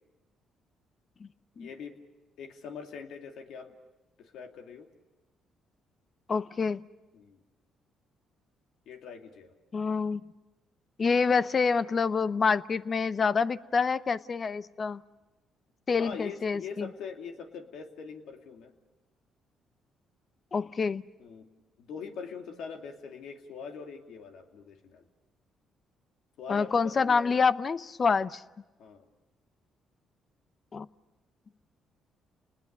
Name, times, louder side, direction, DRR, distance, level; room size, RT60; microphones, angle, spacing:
voice 1, 1.6-2.0 2.4-3.7 4.2-4.9 7.1-7.4 8.9-9.5 16.0-18.7 21.2-21.5 21.8-25.1 26.4-27.4 28.8-29.0, left 6 dB, 75° left, 4 dB, 2.6 m, -43 dB
voice 2, 6.3-6.8 9.7-10.2 11.0-15.0 15.9-16.9 20.5-21.0 26.5-28.4 30.7-30.9, left 5 dB, 40° left, 16 dB, 0.7 m, -27 dB
30.0 x 20.0 x 6.7 m, 1.1 s
cardioid pair, 75°, 0 cm